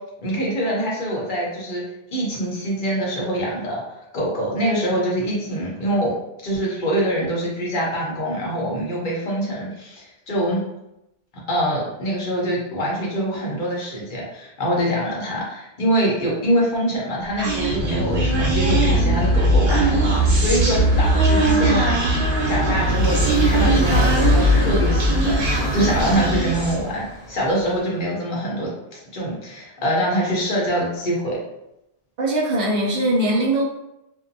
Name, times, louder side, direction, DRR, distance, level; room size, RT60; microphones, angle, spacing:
voice 1, 0.2-1.8 2.1-3.8 4.1-6.1 6.4-10.6 11.5-20.0 20.3-21.9 22.4-31.4, equal, 50° left, -4 dB, 0.9 m, -24 dB
Motorcycle, 17.2-27.9, equal, 25° right, 1.0 m, -34 dB
Human voice, 17.4-26.9, right 1 dB, 70° right, 1.0 m, -19 dB
voice 2, 32.2-33.6, right 1 dB, 55° right, -3 dB, 0.6 m, -21 dB
2.6 x 2.1 x 2.6 m, 0.87 s
omnidirectional pair, 1.1 m